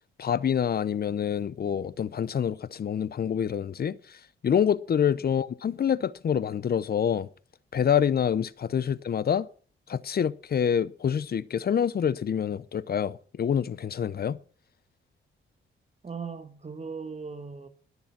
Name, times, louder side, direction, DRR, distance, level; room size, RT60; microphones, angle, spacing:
voice 1, 0.2-7.3 7.7-9.5 9.9-14.4, left 8 dB, 45° left, 0.7 m, -27 dB
voice 2, 16.0-17.7, right 5 dB, 30° right, 1.5 m, -38 dB
20.0 x 6.9 x 5.9 m
cardioid pair, 95°, 21 cm